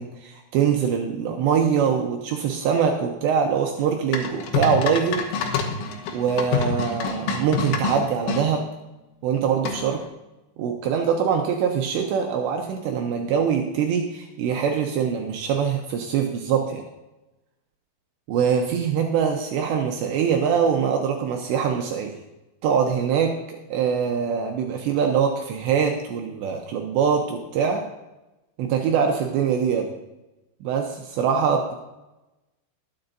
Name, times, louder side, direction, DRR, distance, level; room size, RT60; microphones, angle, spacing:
voice 1, 0.0-5.3 6.1-8.7 9.2-10.0 10.6-16.8 18.3-22.2 22.6-27.8 28.6-29.9 30.6-31.7, right 7 dB, 80° right, 2 dB, 2.8 m, -23 dB
sound 1, 4.1-8.4 9.7-10.1, left 5 dB, 90° left, 3.7 m, -27 dB
20.5 x 8.0 x 2.7 m, 1.0 s
omnidirectional pair, 5.5 m